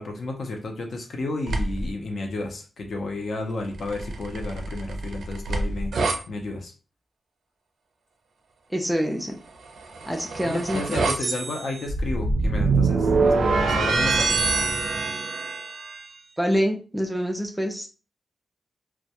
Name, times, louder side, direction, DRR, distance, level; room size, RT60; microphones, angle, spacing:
voice 1, 0.0-6.7 10.4-14.4, left 2 dB, 55° left, 3 dB, 0.5 m, -32 dB
sound 1, 1.5-1.9 3.8-6.2 9.7-16.1, right 3 dB, 75° right, 0.4 m, -25 dB
voice 2, 8.7-9.4 10.1-11.3 16.4-17.9, equal, 5° right, 2 dB, 0.3 m, -26 dB
2.2 x 2.1 x 2.7 m, 0.35 s
wide cardioid pair, 170°, 0 cm